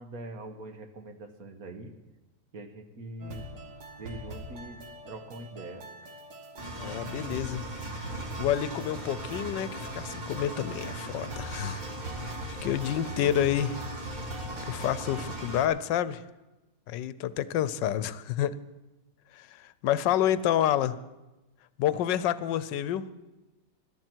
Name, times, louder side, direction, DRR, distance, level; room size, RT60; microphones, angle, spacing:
voice 1, 0.0-2.0 2.5-3.5 4.0-5.9 12.6-12.7 13.2-13.5, right 1 dB, 55° right, 7 dB, 1.6 m, -43 dB
sound 1, 3.2-15.3, right 2 dB, 85° right, 2.3 m, -44 dB
Engine, 6.6-15.7, right 1 dB, 25° right, 1.7 m, -39 dB
voice 2, 6.8-7.6 8.0-8.1 8.4-11.8 12.6-13.7 14.7-16.2 16.9-18.6 19.3-21.0 21.8-23.1, left 11 dB, 90° left, 16 dB, 1.3 m, -28 dB
21.0 x 12.5 x 4.5 m, 1.1 s
omnidirectional pair, 1.9 m